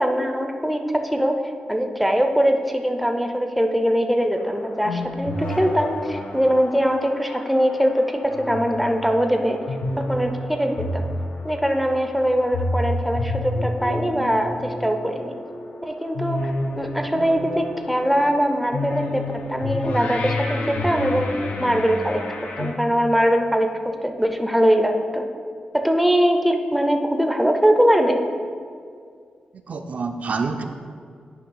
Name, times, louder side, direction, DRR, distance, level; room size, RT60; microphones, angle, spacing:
voice 1, 0.0-1.4 1.7-9.6 10.0-11.1 11.4-15.4 15.8-16.5 16.8-21.3 21.6-22.3 22.6-25.2 25.7-28.3, equal, ahead, 5 dB, 0.5 m, -22 dB
sound 1, 4.4-22.7, left 1 dB, 80° left, 0.8 m, -30 dB
voice 2, 29.5-30.6, right 4 dB, 60° right, 5 dB, 0.5 m, -27 dB
9.2 x 3.1 x 5.5 m, 2.2 s
wide cardioid pair, 105°, 3 cm